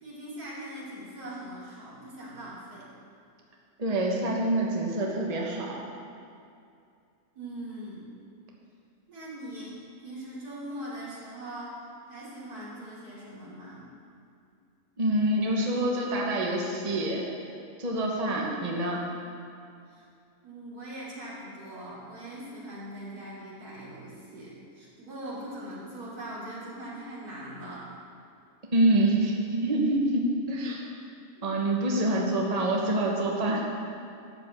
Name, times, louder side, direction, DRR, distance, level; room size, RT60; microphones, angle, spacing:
voice 1, 0.0-2.9 7.4-8.1 9.1-11.8 12.1-13.9 19.9-20.0 20.4-27.9 31.4-31.5, right 1 dB, 85° right, -8 dB, 3.5 m, -41 dB
voice 2, 3.8-5.8 15.0-17.2 17.8-19.0 28.7-30.8 31.4-33.7, right 1 dB, 25° right, -2 dB, 1.2 m, -26 dB
12.0 x 5.3 x 7.9 m, 2.5 s
omnidirectional pair, 1.6 m